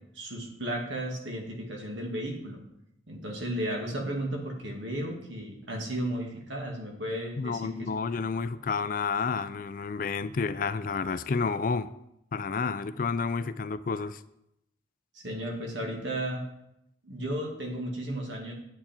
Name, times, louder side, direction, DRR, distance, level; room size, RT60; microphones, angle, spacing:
voice 1, 0.1-2.6 3.1-7.9 15.1-16.5 17.0-18.5, right 1 dB, 75° right, 1 dB, 2.2 m, -34 dB
voice 2, 7.4-11.9 12.3-14.2, left 4 dB, 45° left, 14 dB, 0.4 m, -30 dB
8.9 x 8.5 x 4.4 m, 0.81 s
head